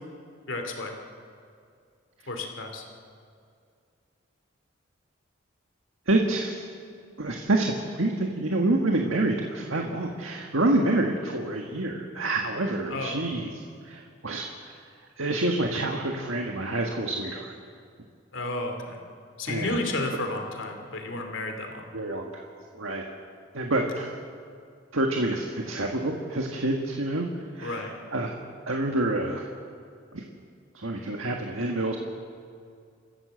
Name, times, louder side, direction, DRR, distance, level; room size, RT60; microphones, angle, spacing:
voice 1, 0.5-0.9 2.3-2.8 12.9-13.2 18.3-19.0 19.4-21.8 27.6-27.9, left 2 dB, 75° left, 4 dB, 2.8 m, -32 dB
voice 2, 6.1-6.7 7.2-14.8 15.2-17.5 19.5-19.8 21.9-22.4 22.7-23.1 23.5-24.2 24.9-27.3 27.5-28.3 28.7-29.5 30.1-30.2 30.7-32.0, right 2 dB, 90° right, 2 dB, 1.7 m, -27 dB
28.0 x 15.0 x 7.7 m, 2.3 s
head